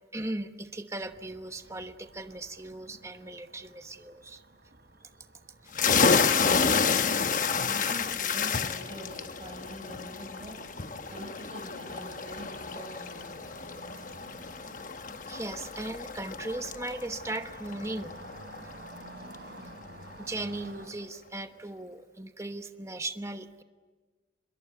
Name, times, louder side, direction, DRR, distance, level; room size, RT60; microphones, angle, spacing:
voice 1, 0.1-4.4 5.6-5.7 15.3-18.2 20.2-23.6, right 2 dB, 15° right, 8 dB, 1.1 m, -38 dB
sound 1, 1.0-20.9, right 2 dB, 65° right, 3.2 m, -52 dB
sound 2, 5.7-19.1, left 5 dB, 45° left, 1.0 m, -30 dB
voice 2, 6.5-13.3, equal, 30° right, 2 dB, 7.7 m, -45 dB
26.0 x 22.0 x 9.5 m, 1.4 s
head